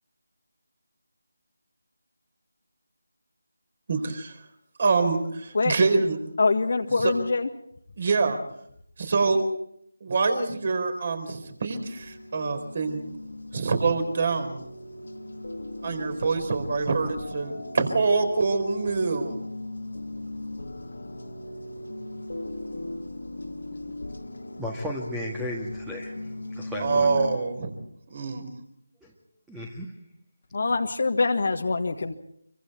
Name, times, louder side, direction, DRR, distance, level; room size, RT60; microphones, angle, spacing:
voice 1, 3.9-4.3 4.8-6.2 7.0-7.1 8.0-8.4 9.0-9.5 10.0-13.0 13.5-14.6 15.8-19.4 26.8-27.7 28.1-28.5, right 4 dB, 40° right, 8 dB, 4.5 m, -25 dB
voice 2, 6.4-7.5 30.5-32.1, left 3 dB, 50° left, 6 dB, 1.7 m, -24 dB
sound 1, 11.7-27.4, left 1 dB, 75° left, 2.1 m, -38 dB
voice 3, 24.6-27.2 29.0-29.1 29.5-29.9, left 1 dB, 5° right, -1 dB, 1.8 m, -35 dB
27.0 x 24.5 x 4.5 m, 0.69 s
figure-of-eight pair, 160°, 0 cm